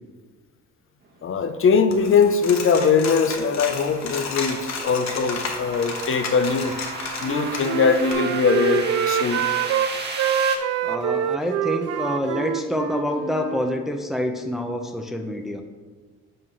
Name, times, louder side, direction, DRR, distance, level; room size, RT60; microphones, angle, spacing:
voice 1, 1.2-6.8 7.2-9.5, left 5 dB, 45° left, 9 dB, 0.6 m, -21 dB
sound 1, 1.5-10.6, right 3 dB, 35° right, 1.2 m, -35 dB
Coin (dropping), 1.9-8.1, left 4 dB, 60° left, 1.2 m, -33 dB
Wind instrument woodwind instrument, 7.2-9.9 10.2-13.8, right 9 dB, 55° right, 0.4 m, -26 dB
voice 2, 10.8-15.6, left 1 dB, ahead, 4 dB, 0.6 m, -27 dB
5.6 x 5.5 x 5.4 m, 1.4 s
cardioid pair, 90°, 30 cm